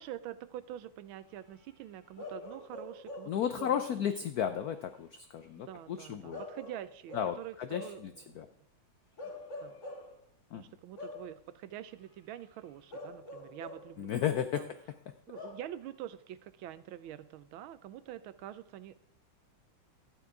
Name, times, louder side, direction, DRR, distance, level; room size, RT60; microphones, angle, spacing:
voice 1, 0.0-4.1 5.7-8.4 9.2-9.3 9.6-9.8 10.5-14.1 14.6-14.7 15.3-18.9, right 12 dB, 80° right, 15 dB, 1.4 m, -46 dB
Bark / Livestock farm animals working animals, 2.2-4.0 6.3-8.1 9.2-10.2 11.0-11.4 12.9-14.0 15.3-15.7, left 2 dB, 40° left, 1.8 m, -45 dB
voice 2, 3.3-6.4 7.1-8.5 10.5-10.6 14.0-14.7, left 9 dB, 80° left, 9 dB, 0.8 m, -34 dB
12.5 x 9.3 x 4.7 m, 0.64 s
omnidirectional pair, 2.3 m